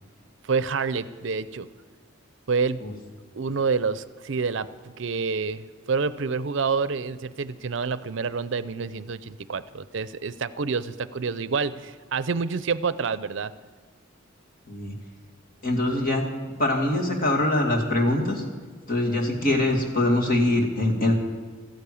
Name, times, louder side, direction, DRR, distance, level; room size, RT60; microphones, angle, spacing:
voice 1, 0.4-1.7 2.5-2.8 3.3-4.7 5.0-13.5, right 5 dB, 65° right, 15 dB, 0.5 m, -28 dB
voice 2, 15.6-16.2 16.6-18.4 18.9-21.1, left 1 dB, 45° left, 1 dB, 2.4 m, -23 dB
14.5 x 10.5 x 8.4 m, 1.4 s
head